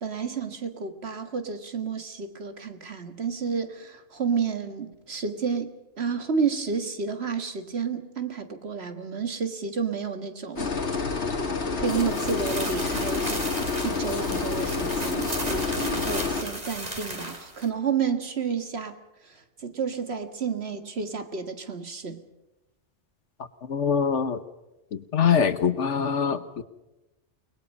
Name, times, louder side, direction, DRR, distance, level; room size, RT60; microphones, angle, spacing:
voice 1, 0.0-10.7 11.1-11.2 11.8-22.2, right 6 dB, 60° right, 8 dB, 1.9 m, -31 dB
sound 1, 10.5-16.4, left 4 dB, 65° left, 2.2 m, -28 dB
sound 2, 11.8-17.7, right 1 dB, 35° right, 3.0 m, -35 dB
voice 2, 23.7-24.4 24.9-26.6, left 7 dB, 85° left, 12 dB, 1.5 m, -24 dB
29.5 x 20.5 x 5.4 m, 0.97 s
omnidirectional pair, 1.2 m